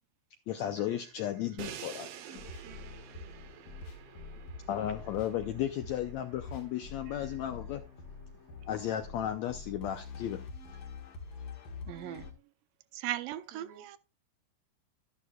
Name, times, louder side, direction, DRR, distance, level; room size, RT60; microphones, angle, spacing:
voice 1, 0.5-2.1 4.7-7.8 8.7-10.4, left 11 dB, 80° left, 1.6 m, -34 dB
Crash cymbal, 1.6-7.6, right 9 dB, 65° right, 1.6 m, -49 dB
voice 2, 2.2-3.6 13.5-14.0, right 6 dB, 35° right, 1.9 m, -57 dB
sound 1, 2.4-12.3, left 4 dB, 55° left, 2.4 m, -46 dB
voice 3, 11.9-12.3 12.9-14.0, right 14 dB, 85° right, 2.3 m, -38 dB
12.0 x 11.0 x 2.3 m
omnidirectional pair, 3.9 m